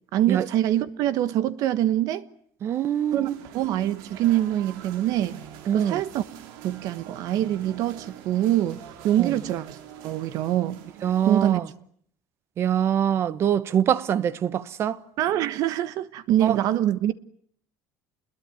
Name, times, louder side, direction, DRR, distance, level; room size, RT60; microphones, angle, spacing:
voice 1, 0.1-2.2 3.1-3.3 3.5-5.4 5.7-6.2 6.6-9.8 10.0-10.8 11.3-11.6 15.2-17.1, right 12 dB, 55° right, 1.3 m, -24 dB
voice 2, 2.6-3.3 5.7-6.0 9.2-9.4 11.0-11.7 12.6-15.0 16.4-16.6, right 9 dB, 35° right, 1.1 m, -24 dB
sound 1, 2.7-11.5, right 9 dB, 85° right, 3.6 m, -45 dB
28.5 x 21.5 x 9.3 m
cardioid pair, 165°, 7 cm